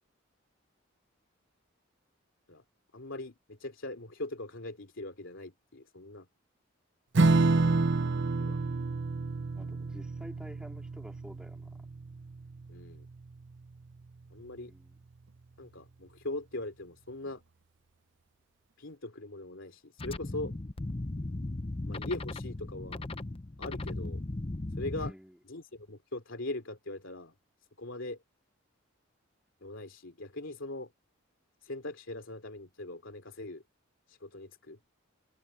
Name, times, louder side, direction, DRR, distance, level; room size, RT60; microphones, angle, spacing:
voice 1, 2.9-6.3 7.2-7.8 8.4-8.6 12.7-13.1 14.3-14.7 15.6-17.4 18.8-20.6 21.9-23.0 23.6-24.2 24.8-25.1 25.4-27.3 27.8-28.2 29.6-30.9 31.6-33.6 34.1-34.8, left 2 dB, 65° left, 3.0 m, -41 dB
Strum, 7.1-14.0, right 3 dB, 60° right, 0.7 m, -29 dB
voice 2, 9.5-11.9 14.7-15.0 25.0-25.4, equal, 5° right, 3.8 m, -50 dB
sound 1, 20.0-25.1, left 2 dB, 25° left, 0.7 m, -37 dB
head